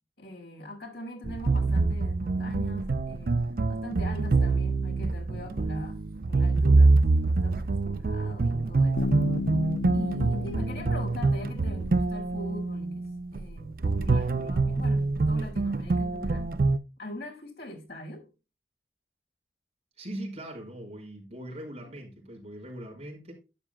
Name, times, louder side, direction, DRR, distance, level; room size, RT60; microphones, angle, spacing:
voice 1, 0.2-6.0 6.3-9.4 9.9-13.0 13.3-16.6 17.0-18.3, left 1 dB, 65° left, 4.9 m, -42 dB
sound 1, 1.2-16.8, right 3 dB, 55° right, 0.5 m, -25 dB
Bass guitar, 9.0-12.7, left 4 dB, 85° left, 0.6 m, -35 dB
voice 2, 20.0-23.3, right 1 dB, 35° right, 5.4 m, -40 dB
12.0 x 10.0 x 2.3 m
head